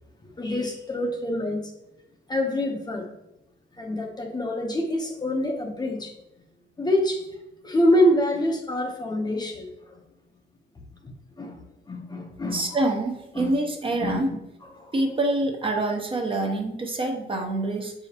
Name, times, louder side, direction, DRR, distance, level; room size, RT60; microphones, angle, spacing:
voice 1, 0.4-1.7 2.3-3.1 3.8-6.1 6.8-7.2 7.6-10.0 11.0-11.6 11.9-12.6 13.3-13.5 14.0-14.2 14.8-14.9, left 1 dB, 20° left, 1 dB, 0.8 m, -26 dB
voice 2, 12.5-14.3 14.9-17.9, right 2 dB, 25° right, 2 dB, 0.8 m, -26 dB
7.6 x 4.9 x 2.8 m, 0.91 s
wide cardioid pair, 165°, 20 cm